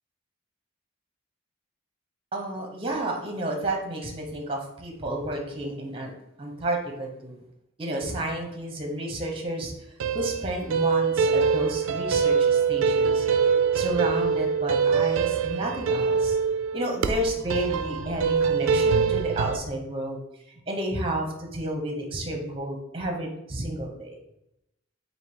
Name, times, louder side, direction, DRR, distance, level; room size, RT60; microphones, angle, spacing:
voice 1, 2.3-6.1 6.4-7.4 7.8-9.7 10.1-13.3 13.7-16.4 16.7-20.2 20.7-24.2, right 1 dB, 25° right, 2 dB, 0.7 m, -31 dB
sound 1, 10.0-19.6, right 6 dB, 90° right, 0.3 m, -24 dB
3.5 x 2.7 x 4.5 m, 0.84 s
head